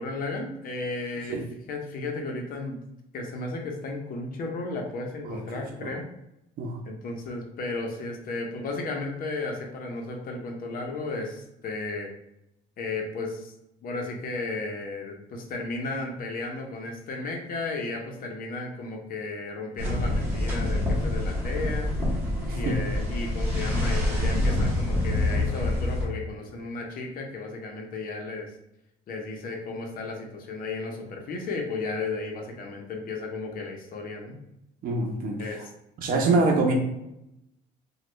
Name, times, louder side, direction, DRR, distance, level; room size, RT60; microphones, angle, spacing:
voice 1, 0.0-1.4 1.7-2.8 3.1-6.1 6.8-12.1 12.8-13.5 13.8-22.0 22.5-28.5 29.1-34.4 35.4-35.7 36.1-36.4, left 3 dB, 55° left, 2 dB, 0.8 m, -34 dB
sound 1, 19.8-26.0, left 1 dB, 10° right, 1.4 m, -26 dB
voice 2, 34.8-35.5 36.0-36.7, right 3 dB, 55° right, 0 dB, 0.7 m, -25 dB
3.2 x 2.3 x 3.0 m, 0.84 s
cardioid pair, 110°, 17 cm